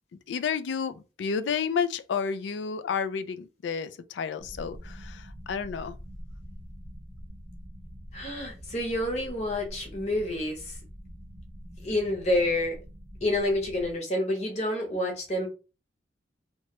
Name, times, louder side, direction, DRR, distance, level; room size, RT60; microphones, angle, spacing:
voice 1, 0.3-6.0, left 6 dB, 85° left, 0.3 m, -31 dB
sound 1, 4.4-13.9, equal, 35° right, 0.7 m, -45 dB
voice 2, 8.1-10.8 11.8-12.8 13.2-15.5, left 1 dB, 40° left, 0.9 m, -28 dB
2.8 x 2.2 x 3.0 m
head